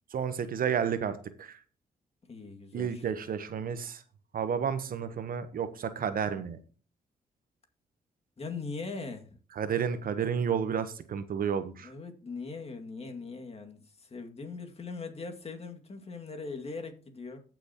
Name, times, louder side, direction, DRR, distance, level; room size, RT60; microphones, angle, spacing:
voice 1, 0.1-1.6 2.7-4.0 4.3-6.6 9.6-11.9, right 7 dB, 65° right, 12 dB, 1.1 m, -31 dB
voice 2, 2.3-3.0 8.4-9.3 11.8-17.4, left 4 dB, 40° left, 4 dB, 2.3 m, -40 dB
15.5 x 6.1 x 3.0 m, 0.38 s
cardioid pair, 65°, 16 cm